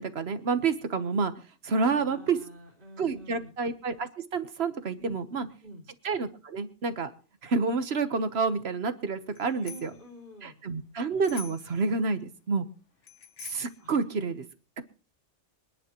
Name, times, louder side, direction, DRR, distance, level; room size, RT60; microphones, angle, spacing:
voice 1, 0.0-1.3 1.6-2.4 3.0-5.5 6.0-7.1 7.4-9.9 10.4-12.7 13.4-14.4, right 4 dB, 60° right, 10 dB, 1.4 m, -29 dB
voice 2, 1.8-3.5 5.0-5.8 9.4-10.6 13.8-13.9, equal, 45° right, 0 dB, 4.0 m, -47 dB
Bicycle bell, 9.3-10.0 11.2-11.8 13.0-13.8, left 7 dB, 75° left, 1.5 m, -45 dB
25.5 x 10.5 x 3.0 m, 0.37 s
omnidirectional pair, 1.2 m